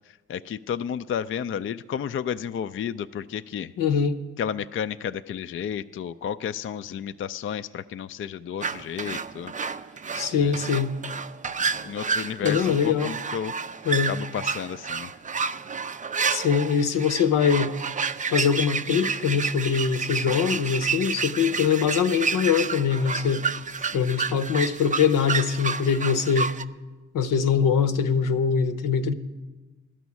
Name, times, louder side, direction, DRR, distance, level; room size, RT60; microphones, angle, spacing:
voice 1, 0.3-3.7 4.4-9.5 10.4-10.5 11.6-13.5 14.1-15.1 23.9-24.0, left 8 dB, 40° left, 11 dB, 0.4 m, -32 dB
voice 2, 3.8-4.2 10.1-10.9 12.4-13.1 13.9-14.1 16.3-17.7 18.3-23.4 23.9-26.5 27.1-29.1, left 7 dB, 80° left, 10 dB, 0.8 m, -23 dB
sound 1, 8.6-26.6, right 5 dB, 25° right, 0.4 m, -30 dB
12.5 x 6.2 x 9.6 m, 1.2 s
cardioid pair, 65°, 32 cm